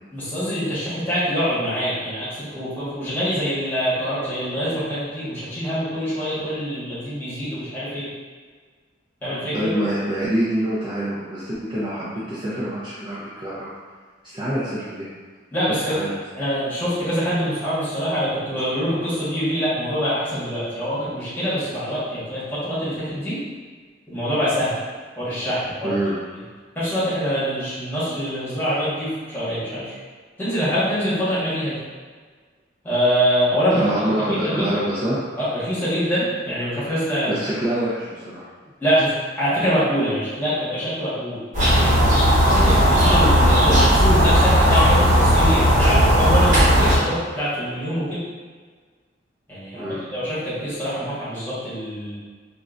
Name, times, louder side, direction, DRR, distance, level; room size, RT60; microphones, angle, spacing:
voice 1, 0.1-8.1 9.2-9.7 15.5-16.0 16.4-23.4 24.1-24.8 25.2-26.0 26.7-29.9 30.4-31.8 32.8-33.8 34.3-34.8 35.4-37.4 38.8-39.1 39.4-41.4 42.4-48.2 49.5-52.2, equal, 10° left, -11 dB, 1.2 m, -24 dB
voice 2, 9.5-13.7 14.2-15.1 15.7-16.1 25.8-26.1 33.7-35.2 37.3-38.4 42.5-42.8 49.7-50.0, right 1 dB, 25° right, -8 dB, 0.4 m, -26 dB
sound 1, 41.5-47.0, equal, 40° right, 1.2 m, -16 dB
3.7 x 2.1 x 2.4 m, 1.5 s
head